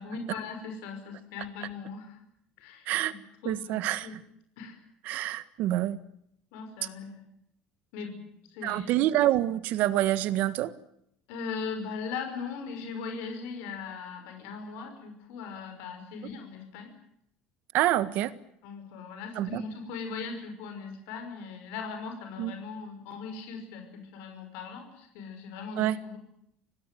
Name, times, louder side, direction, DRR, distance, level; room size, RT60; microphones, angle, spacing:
voice 1, 0.0-2.2 2.6-2.9 3.4-3.8 4.0-4.1 4.6-4.8 6.5-7.2 7.9-8.2 8.5-8.9 11.3-16.9 18.0-18.1 18.6-26.2, left 5 dB, 85° left, 6 dB, 5.9 m, -39 dB
voice 2, 3.4-4.1 5.0-6.0 8.6-10.7 17.7-18.3 19.4-19.6 22.4-22.5 25.8-26.0, right 14 dB, 55° right, 14 dB, 1.6 m, -26 dB
27.0 x 18.5 x 9.3 m, 0.74 s
cardioid pair, 165°, 3 cm